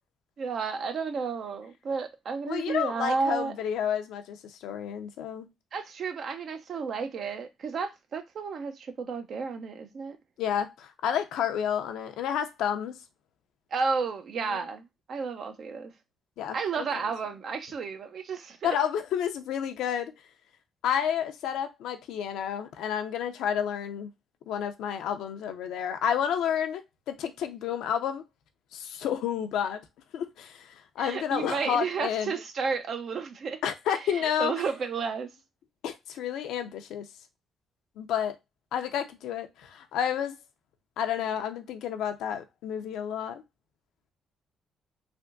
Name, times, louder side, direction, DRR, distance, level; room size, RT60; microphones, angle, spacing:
voice 1, 0.4-3.5 5.7-10.2 13.7-15.9 16.5-18.8 31.0-33.6 34.0-35.3, right 5 dB, 60° right, 0.6 m, -32 dB
voice 2, 2.5-5.5 10.4-12.9 14.5-14.6 16.4-16.9 18.6-20.1 20.8-24.1 24.5-26.8 27.1-28.2 28.7-29.8 30.1-30.7 31.0-32.3 33.6-34.5 35.8-37.0 38.0-38.4 38.7-40.4 41.0-43.4, left 9 dB, 85° left, 0.5 m, -30 dB
3.4 x 2.6 x 2.4 m
cardioid pair, 90°, 0 cm